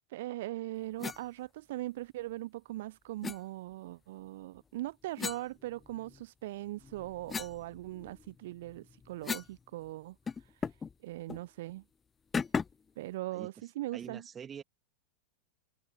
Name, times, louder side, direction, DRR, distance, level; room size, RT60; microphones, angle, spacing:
voice 1, 0.1-10.2 11.0-11.8 13.0-14.3, right 16 dB, 55° right, 0.4 m, -40 dB
sound 1, 1.0-1.2 3.2-3.4 5.2-6.2 6.7-9.6 9.9-10.0 10.3-10.9 11.3-11.5 12.3-12.9, left 5 dB, 15° left, 0.7 m, -38 dB
voice 2, 13.3-14.6, right 7 dB, 20° right, 2.4 m, -46 dB
figure-of-eight pair, 90°, 0 cm